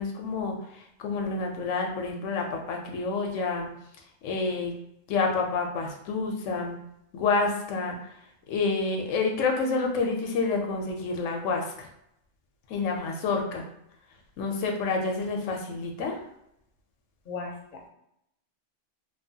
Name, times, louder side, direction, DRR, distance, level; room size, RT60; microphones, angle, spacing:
voice 1, 0.0-3.7 4.2-4.7 5.1-6.8 7.1-8.0 8.5-11.9 12.7-13.7 14.4-16.2, left 4 dB, 85° left, 2 dB, 0.9 m, -28 dB
voice 2, 17.3-17.9, left 4 dB, 45° left, -1 dB, 0.7 m, -37 dB
2.9 x 2.2 x 2.6 m, 0.77 s
omnidirectional pair, 1.3 m